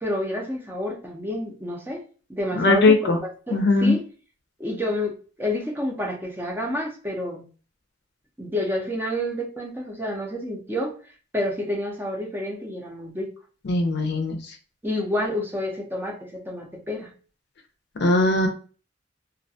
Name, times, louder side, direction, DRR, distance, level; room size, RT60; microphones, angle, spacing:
voice 1, 0.0-2.0 2.3-3.1 3.5-4.0 4.6-7.5 8.4-11.0 11.3-13.3 14.8-17.1, left 1 dB, 10° right, -1 dB, 0.5 m, -29 dB
voice 2, 2.5-3.2 3.5-4.0 13.6-14.4 18.0-18.5, left 2 dB, 60° left, 4 dB, 0.5 m, -19 dB
2.3 x 2.2 x 2.6 m, 0.38 s
head